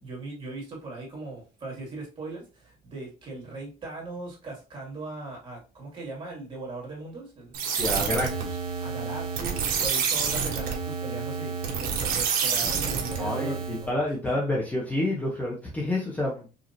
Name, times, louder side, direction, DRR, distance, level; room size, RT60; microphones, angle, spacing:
voice 1, 0.0-7.6 8.8-14.1, right 3 dB, 30° right, -2 dB, 2.4 m, -39 dB
sound 1, 7.5-13.9, right 6 dB, 65° right, 1.2 m, -28 dB
voice 2, 7.7-8.6 13.2-16.5, left 1 dB, 10° left, -4 dB, 1.0 m, -28 dB
5.1 x 2.8 x 2.8 m, 0.32 s
cardioid pair, 145°, 16 cm